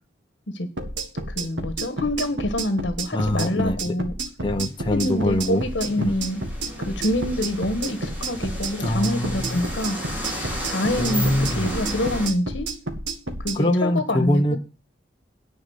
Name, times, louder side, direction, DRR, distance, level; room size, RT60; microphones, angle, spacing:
sound 1, 0.8-13.6, right 2 dB, 85° right, 1.8 m, -31 dB
voice 1, 1.3-4.1 4.9-6.4 6.8-10.0 10.7-12.7 13.4-14.6, left 1 dB, 70° left, 9 dB, 1.4 m, -26 dB
voice 2, 3.1-4.0 4.4-5.6 6.0-6.2 8.8-9.6 11.0-11.7 13.5-14.6, left 1 dB, 25° left, 5 dB, 0.8 m, -23 dB
sound 2, 4.8-12.3, equal, 10° right, 3.3 m, -33 dB
9.9 x 5.3 x 8.0 m, 0.33 s
head